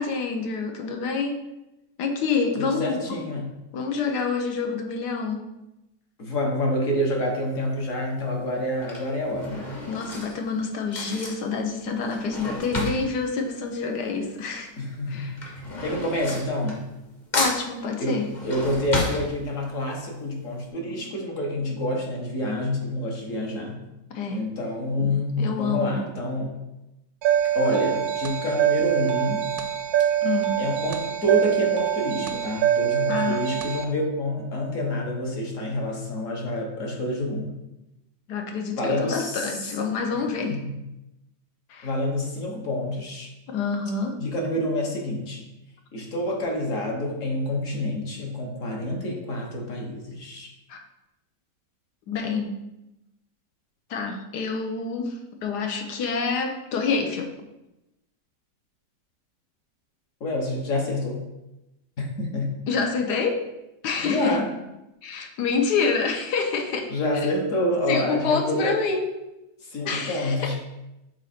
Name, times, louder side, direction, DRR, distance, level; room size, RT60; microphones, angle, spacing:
voice 1, 0.0-1.4 2.0-3.2 3.7-5.5 9.9-14.7 15.1-15.4 17.3-18.3 20.8-21.0 24.1-24.4 25.0-26.0 30.2-30.6 32.2-32.3 33.1-33.4 38.3-40.6 41.7-41.9 43.5-44.2 50.7-50.8 52.1-52.6 53.9-57.3 62.7-63.4 63.8-64.4 65.0-67.3 67.9-69.1 69.8-70.6, left 5 dB, 75° left, 4 dB, 1.4 m, -27 dB
voice 2, 2.6-3.5 6.2-9.7 14.8-15.4 15.8-16.9 18.0-18.2 18.4-23.8 24.3-26.6 27.5-29.5 30.6-37.6 38.8-39.5 40.5-40.7 41.8-43.3 44.2-45.4 45.9-50.5 60.2-61.2 62.0-62.5 64.0-64.5 66.9-68.7 69.6-70.6, left 1 dB, 50° left, 0 dB, 1.4 m, -27 dB
Drawer open or close / Cutlery silverware, 7.3-7.7 8.6-14.4 14.7-17.1 17.3-19.9 20.3-20.4 20.6-20.7, left 1 dB, 30° left, 1.2 m, -33 dB
sound 1, 27.2-33.8, right 11 dB, 70° right, 0.9 m, -24 dB
6.0 x 4.2 x 4.3 m, 0.95 s
omnidirectional pair, 1.9 m